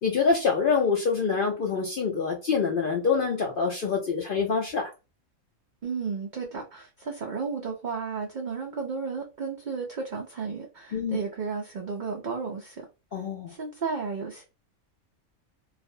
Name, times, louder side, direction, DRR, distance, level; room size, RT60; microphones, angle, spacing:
voice 1, 0.0-4.9 10.9-11.2 13.1-13.5, left 5 dB, 65° left, 0.5 m, -25 dB
voice 2, 5.8-12.9 13.5-14.4, right 5 dB, 85° right, 0.4 m, -33 dB
2.4 x 2.0 x 2.6 m
omnidirectional pair, 1.4 m